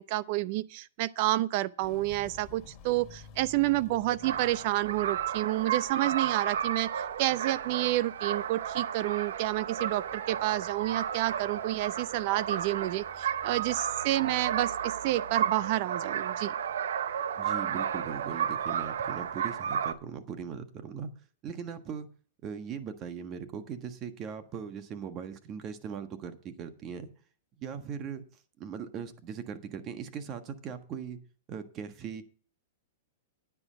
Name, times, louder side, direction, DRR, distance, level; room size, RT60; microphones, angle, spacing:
voice 1, 0.0-6.9 7.2-16.5, right 16 dB, 50° right, 0.6 m, -29 dB
Walk footsteps, 1.8-14.2, left 5 dB, 30° left, 2.6 m, -55 dB
sound 1, 4.2-19.9, right 8 dB, 80° right, 0.8 m, -33 dB
voice 2, 17.4-21.1 21.4-22.1 22.4-27.1 27.6-28.2 28.6-31.2 31.5-32.2, right 7 dB, 30° right, 1.4 m, -39 dB
10.0 x 9.7 x 5.1 m
hypercardioid pair, 140°, 0 cm